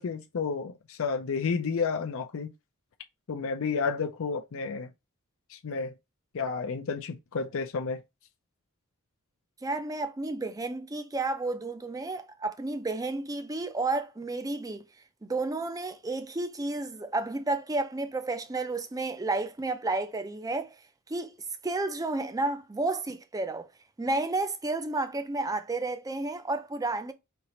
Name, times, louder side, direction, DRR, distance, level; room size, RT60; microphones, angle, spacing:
voice 1, 0.0-2.5 3.3-4.9 5.5-5.9 6.3-8.0, left 5 dB, 65° left, 0.5 m, -31 dB
voice 2, 9.6-14.9 15.2-20.8 21.1-21.4 21.6-23.7 24.0-27.1, right 2 dB, 15° right, 0.5 m, -31 dB
4.5 x 2.9 x 2.8 m
head